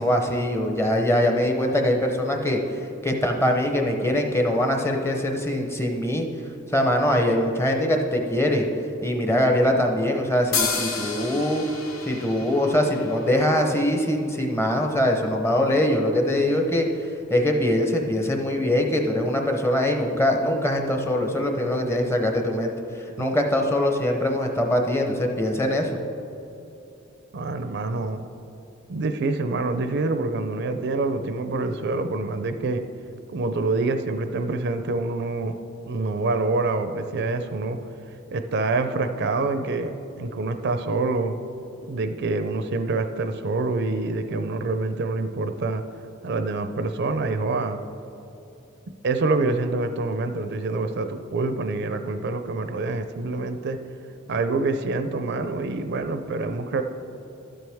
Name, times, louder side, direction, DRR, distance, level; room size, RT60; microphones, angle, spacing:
voice 1, 0.0-6.3 6.7-8.7 9.0-11.6 12.0-16.9 17.3-22.7 23.2-25.9, left 1 dB, 10° left, 3 dB, 0.7 m, -22 dB
sound 1, 10.5-14.1, left 5 dB, 75° left, 0.9 m, -31 dB
voice 2, 27.3-28.3 28.9-32.8 33.3-35.5 35.9-37.8 38.3-41.4 41.9-45.8 46.2-47.8 49.0-53.8 54.3-56.8, right 3 dB, 55° right, 8 dB, 0.5 m, -26 dB
12.5 x 7.7 x 3.5 m, 2.9 s
head